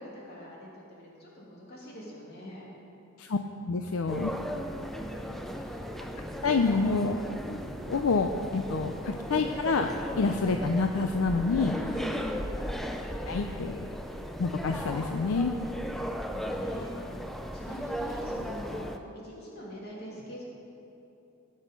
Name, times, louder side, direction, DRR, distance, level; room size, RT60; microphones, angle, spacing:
voice 1, 0.0-2.7 4.7-6.0 8.5-9.0 11.5-12.5 12.7-13.0 13.3-13.5 14.1-14.3 15.9-17.2 17.5-18.9 19.2-20.4, equal, 45° left, -5 dB, 2.8 m, -43 dB
voice 2, 3.7-4.3 6.4-7.2 7.9-9.9 10.2-11.8 13.3-13.9 14.4-15.6, left 4 dB, 75° left, 5 dB, 0.5 m, -27 dB
sound 1, 4.1-19.0, equal, ahead, 0.5 m, -36 dB
18.0 x 6.4 x 5.3 m, 2.9 s
head